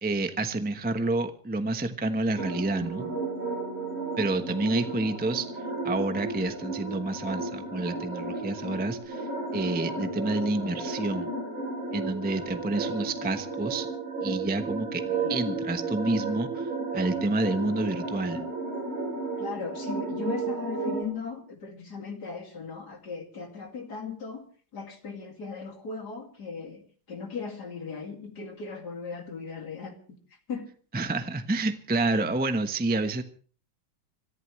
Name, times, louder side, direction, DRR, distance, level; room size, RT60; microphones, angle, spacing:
voice 1, 0.0-3.2 4.2-5.5 5.8-9.3 9.5-11.3 11.9-13.9 14.2-15.0 15.3-18.4 30.9-33.2, right 2 dB, 5° right, 8 dB, 0.7 m, -29 dB
sound 1, 2.4-21.0, right 3 dB, 90° right, 4.2 m, -33 dB
Bass guitar, 2.8-9.0, right 5 dB, 35° right, 7.5 m, -48 dB
voice 2, 19.4-24.4 24.7-26.8 27.1-29.9 30.5-30.6, left 5 dB, 55° left, 4 dB, 2.9 m, -37 dB
26.0 x 15.0 x 3.2 m, 0.41 s
omnidirectional pair, 2.1 m